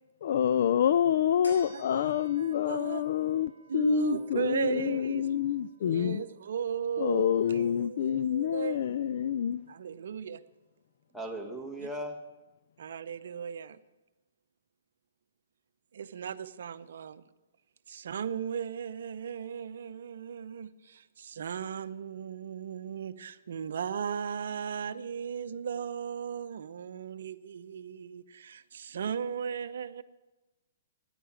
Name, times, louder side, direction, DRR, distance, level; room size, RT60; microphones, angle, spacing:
voice 1, 0.2-6.2 7.0-9.7, left 10 dB, 60° left, 0.3 m, -27 dB
sound 1, 1.4-8.2 8.6-8.7, right 1 dB, 85° left, 3.7 m, -57 dB
voice 2, 1.7-3.0 3.7-5.3 5.8-8.8 9.7-10.4 12.8-13.8 15.9-17.2 17.9-30.0, right 7 dB, 65° right, 0.6 m, -36 dB
voice 3, 2.9-3.5 4.1-4.3 6.1-6.3 8.8-8.9 11.1-12.2, right 1 dB, 5° left, 1.6 m, -40 dB
10.0 x 9.3 x 7.7 m
hypercardioid pair, 125°, 0 cm